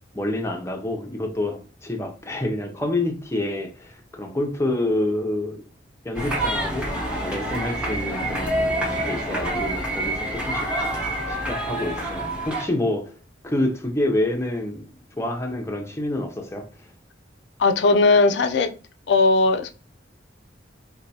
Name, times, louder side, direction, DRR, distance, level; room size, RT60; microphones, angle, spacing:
voice 1, 0.1-5.6 6.0-6.9 7.2-11.0 11.3-13.1 13.4-14.8 15.2-16.9, left 1 dB, 15° left, 0.6 m, -28 dB
sound 1, 6.1-12.6, right 1 dB, 5° right, 0.9 m, -27 dB
voice 2, 17.6-18.7 19.1-19.7, left 3 dB, 65° left, 0.4 m, -18 dB
4.3 x 2.2 x 2.7 m
head